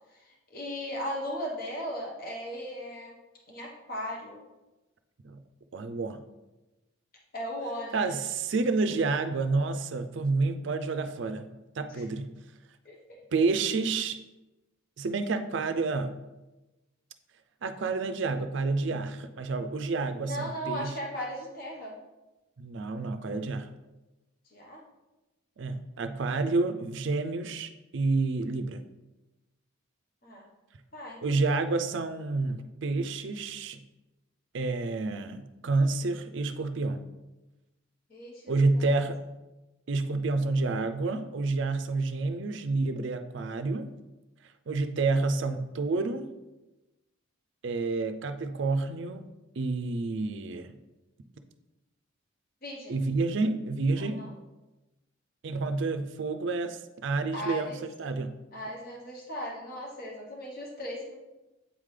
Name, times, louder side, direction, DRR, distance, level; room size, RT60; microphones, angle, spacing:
voice 1, 0.1-3.2 3.5-4.4 7.3-8.1 8.9-9.0 11.9-12.0 12.8-13.0 20.3-22.0 24.5-24.8 30.2-30.5 30.9-31.4 38.1-38.9 52.6-53.0 54.0-54.3 57.3-57.8 58.5-61.1, equal, 45° left, -2 dB, 1.1 m, -37 dB
voice 2, 5.7-6.2 7.9-12.3 13.3-14.2 15.0-16.2 17.6-20.9 22.6-23.7 25.6-28.8 31.2-33.8 34.5-37.0 38.5-39.2 39.9-43.9 44.7-46.3 47.6-49.2 49.6-50.7 52.9-54.2 55.4-58.3, right 3 dB, 60° right, 9 dB, 0.4 m, -29 dB
8.2 x 3.7 x 3.2 m, 1.1 s
head